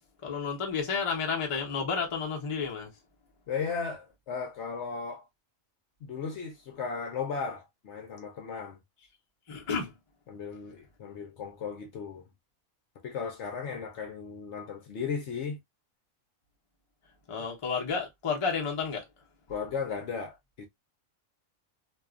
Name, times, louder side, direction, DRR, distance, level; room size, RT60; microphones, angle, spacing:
voice 1, 0.2-2.9 9.5-9.9 17.3-19.1, left 5 dB, 30° left, 0.7 m, -31 dB
voice 2, 3.5-5.3 6.0-8.8 10.3-12.3 13.0-15.6 19.5-20.7, left 5 dB, 65° left, 0.9 m, -36 dB
2.6 x 2.3 x 2.3 m
omnidirectional pair, 1.4 m